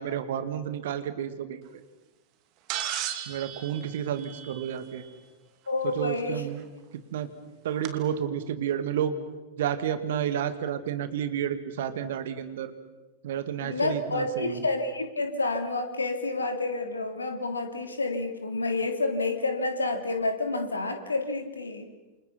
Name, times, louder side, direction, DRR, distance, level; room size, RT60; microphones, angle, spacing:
voice 1, 0.0-1.6 3.3-5.0 6.0-6.7 7.1-7.3 7.6-9.2 9.6-12.7 13.2-14.7, right 9 dB, 60° right, 11 dB, 2.2 m, -31 dB
sound 1, 2.7-5.0 6.6-6.7 7.8-7.9, right 11 dB, 40° right, 2.6 m, -35 dB
voice 2, 5.7-6.5 13.6-21.9, left 2 dB, 75° left, 6 dB, 3.1 m, -29 dB
28.5 x 27.5 x 5.8 m, 1.1 s
figure-of-eight pair, 90°, 0 cm